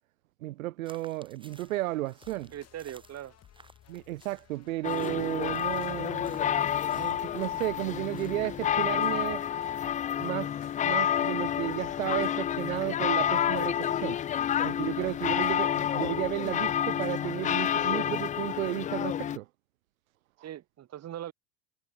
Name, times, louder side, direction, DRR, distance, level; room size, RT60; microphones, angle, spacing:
voice 1, 0.4-2.5 3.9-6.6 6.9-9.4 10.2-10.6 10.8-14.2 14.6-19.5, right 17 dB, 90° right, 0.7 m, -33 dB
sound 1, 0.8-8.6, right 3 dB, 10° right, 5.1 m, -58 dB
sound 2, 1.5-17.1, left 11 dB, 40° left, 3.0 m, -59 dB
voice 2, 2.5-3.4 15.0-15.1 20.4-21.3, right 11 dB, 40° right, 3.4 m, -40 dB
sound 3, 4.8-19.4, left 10 dB, 20° left, 0.4 m, -29 dB
hypercardioid pair, 95°, 40 cm